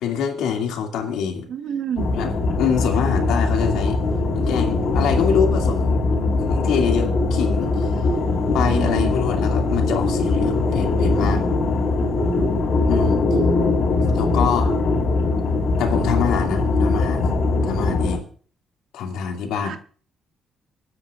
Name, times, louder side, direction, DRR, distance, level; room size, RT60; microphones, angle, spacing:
voice 1, 0.0-1.5 2.1-4.0 4.3-7.9 8.5-11.4 12.8-13.2 14.1-14.7 15.8-17.3 17.6-18.3 18.9-19.8, left 7 dB, 90° left, 2.4 m, -25 dB
voice 2, 1.5-2.1 8.6-9.1 19.6-19.8, right 8 dB, 70° right, 1.2 m, -29 dB
sound 1, 2.0-18.2, left 3 dB, 65° left, 4.4 m, -21 dB
24.5 x 9.6 x 2.5 m
cardioid pair, 90°, 0 cm